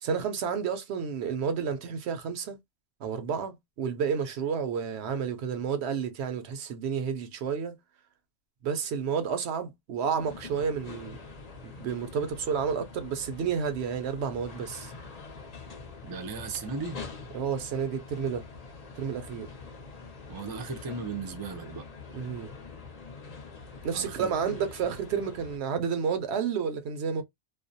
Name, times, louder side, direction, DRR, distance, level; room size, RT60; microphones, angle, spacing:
voice 1, 0.0-2.6 3.0-7.8 8.6-11.2 11.6-14.9 17.3-18.4 19.0-19.5 22.1-22.5 23.8-27.2, right 6 dB, 80° right, 0.8 m, -31 dB
sound 1, 10.2-25.6, left 4 dB, 45° left, 0.6 m, -45 dB
voice 2, 16.0-17.0 20.3-21.8 23.9-24.3, right 4 dB, 35° right, 0.4 m, -36 dB
2.3 x 2.0 x 2.6 m
omnidirectional pair, 1.1 m